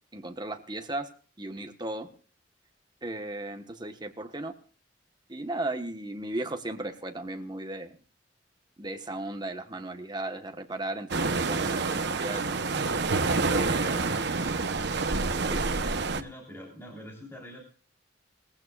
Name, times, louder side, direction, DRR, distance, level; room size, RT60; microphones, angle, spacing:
voice 1, 0.1-1.1 1.4-2.1 3.0-4.5 5.3-8.0 8.8-12.6 13.5-14.5 15.5-15.6, right 2 dB, 20° right, 6 dB, 1.3 m, -36 dB
sound 1, 11.1-16.2, right 3 dB, 60° right, 0.9 m, -27 dB
voice 2, 16.1-17.6, left 1 dB, 10° left, -2 dB, 3.6 m, -44 dB
21.5 x 15.0 x 2.5 m, 0.41 s
head